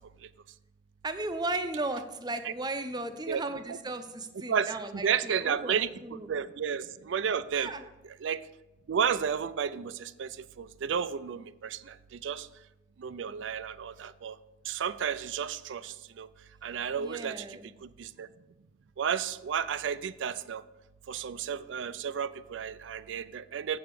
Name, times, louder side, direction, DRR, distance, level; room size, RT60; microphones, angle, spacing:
voice 1, 1.0-6.3 7.5-7.8 17.0-17.7, right 2 dB, 20° right, 9 dB, 0.6 m, -36 dB
voice 2, 4.5-5.9 6.3-7.7 8.2-8.4 8.9-10.3 10.6-11.8 12.2-12.5 13.0-14.3 14.7-16.3 16.6-17.4 18.0-18.3 19.0-20.6 21.1-23.8, right 7 dB, 75° right, 16 dB, 0.4 m, -32 dB
7.8 x 6.9 x 4.7 m, 0.99 s
head